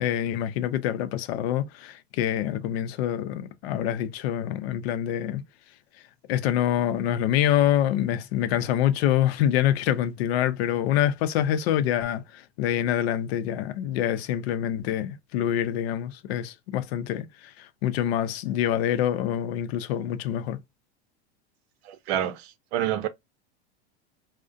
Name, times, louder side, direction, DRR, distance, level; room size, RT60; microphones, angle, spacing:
voice 1, 0.0-5.4 6.3-20.6, left 11 dB, 70° left, 0.5 m, -26 dB
voice 2, 21.8-23.1, right 11 dB, 70° right, 0.6 m, -28 dB
2.4 x 2.1 x 2.4 m
hypercardioid pair, 115°, 33 cm